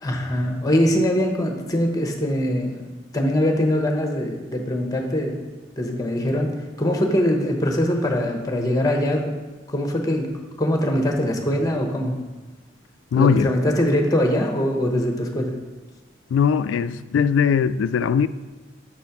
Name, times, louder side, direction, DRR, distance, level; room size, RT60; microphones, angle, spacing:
voice 1, 0.0-2.8 3.1-5.5 5.8-6.5 6.8-9.3 9.7-10.3 10.6-12.1 13.1-15.5, equal, 20° left, 3 dB, 0.9 m, -22 dB
voice 2, 13.1-13.5 16.3-18.3, left 7 dB, 85° left, 16 dB, 0.3 m, -20 dB
7.4 x 4.1 x 5.8 m, 1.2 s
head